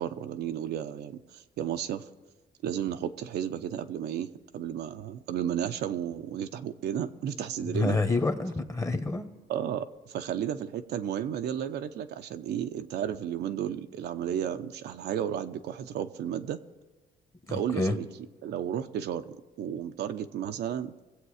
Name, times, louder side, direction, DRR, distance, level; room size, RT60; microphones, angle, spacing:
voice 1, 0.0-2.1 2.6-8.0 9.5-16.6 17.5-18.1 18.4-20.9, right 9 dB, 75° right, 7 dB, 0.8 m, -33 dB
voice 2, 7.6-9.3 17.5-17.9, left 2 dB, 15° left, 8 dB, 1.2 m, -28 dB
21.5 x 8.1 x 4.9 m, 1.2 s
cardioid pair, 120°, 17 cm